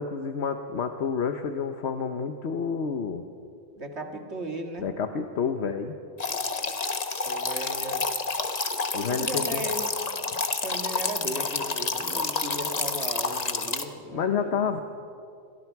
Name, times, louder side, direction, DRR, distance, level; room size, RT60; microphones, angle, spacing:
voice 1, 0.0-3.2 4.8-5.9 8.9-9.6 14.1-14.8, left 6 dB, 70° left, 6 dB, 1.3 m, -29 dB
voice 2, 3.8-4.9 7.2-8.0 9.1-9.9 10.2-14.5, right 1 dB, 70° right, 3 dB, 2.3 m, -36 dB
sound 1, 6.2-13.8, left 4 dB, 35° left, 1.1 m, -29 dB
29.0 x 23.0 x 4.7 m, 2.5 s
omnidirectional pair, 1.2 m